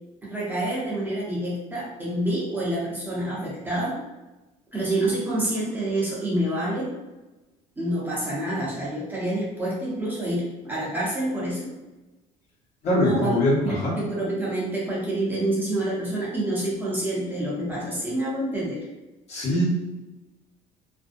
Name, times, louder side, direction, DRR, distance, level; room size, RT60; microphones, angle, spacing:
voice 1, 0.2-4.0 4.7-6.9 7.8-11.7 13.0-13.3 13.6-18.8, right 1 dB, 15° right, -7 dB, 0.7 m, -27 dB
voice 2, 12.8-13.9 19.3-19.6, left 1 dB, 55° left, -6 dB, 1.1 m, -22 dB
2.5 x 2.0 x 2.5 m, 1.1 s
cardioid pair, 135°, 14 cm